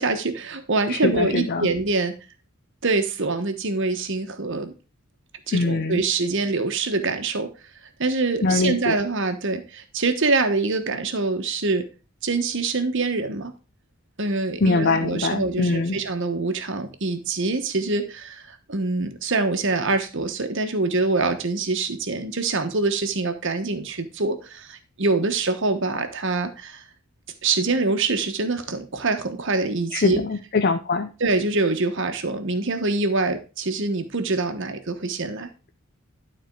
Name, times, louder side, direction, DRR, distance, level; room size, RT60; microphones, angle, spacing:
voice 1, 0.0-2.1 2.8-4.7 5.5-7.5 8.0-11.9 12.2-13.5 14.2-26.8 27.4-30.2 31.2-35.5, right 3 dB, 55° right, 7 dB, 1.2 m, -25 dB
voice 2, 0.9-1.7 5.5-6.0 8.4-9.0 14.6-16.0 29.9-31.1, left 3 dB, 45° left, 6 dB, 0.6 m, -23 dB
11.5 x 4.3 x 4.6 m, 0.33 s
head